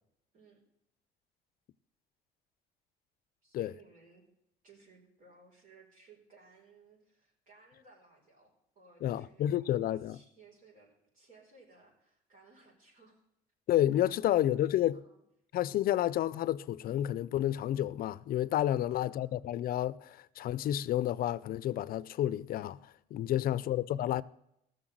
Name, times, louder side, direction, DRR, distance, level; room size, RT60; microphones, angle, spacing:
voice 1, 3.4-4.2 4.6-13.2 14.0-14.6 14.9-15.2 18.7-19.2 23.3-23.8, right 4 dB, 50° right, 4.6 m, -60 dB
voice 2, 9.0-10.2 13.7-15.0 15.5-24.2, left 12 dB, 60° left, 0.5 m, -30 dB
15.0 x 6.7 x 7.8 m
cardioid pair, 110°, 17 cm